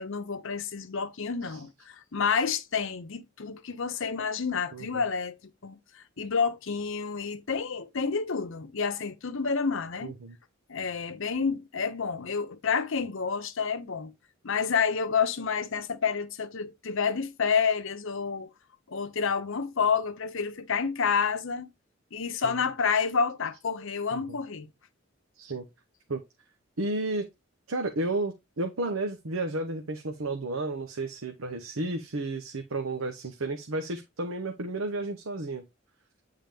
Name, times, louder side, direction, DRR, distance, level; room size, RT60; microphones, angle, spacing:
voice 1, 0.0-10.1 10.7-14.1 14.4-18.5 18.9-21.7 22.1-24.7, left 5 dB, 65° left, 0.8 m, -29 dB
voice 2, 4.7-5.0 10.0-10.3 22.4-22.5 24.1-24.4 25.4-25.6 26.1-26.2 26.8-27.3 27.7-35.7, right 2 dB, 80° right, 0.9 m, -32 dB
9.0 x 3.8 x 3.5 m
head